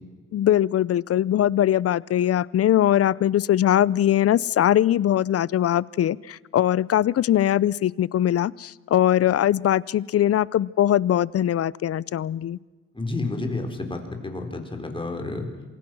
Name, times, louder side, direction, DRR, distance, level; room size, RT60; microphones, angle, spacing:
voice 1, 0.3-12.6, left 11 dB, 50° left, 22 dB, 0.6 m, -21 dB
voice 2, 12.9-15.5, left 2 dB, 15° left, 4 dB, 4.4 m, -30 dB
27.5 x 21.0 x 6.2 m, 1.3 s
cardioid pair, 90°, 30 cm